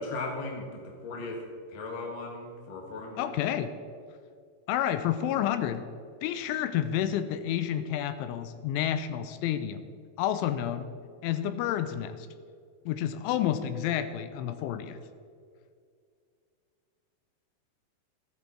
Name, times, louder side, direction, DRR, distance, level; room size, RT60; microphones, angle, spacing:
voice 1, 0.0-3.4, left 2 dB, 65° left, 0 dB, 1.1 m, -37 dB
voice 2, 3.2-3.7 4.7-5.9 6.2-9.9 10.2-10.9 11.2-12.3 12.9-15.0, left 10 dB, 85° left, 10 dB, 3.0 m, -30 dB
15.0 x 10.5 x 4.5 m, 2.3 s
omnidirectional pair, 5.6 m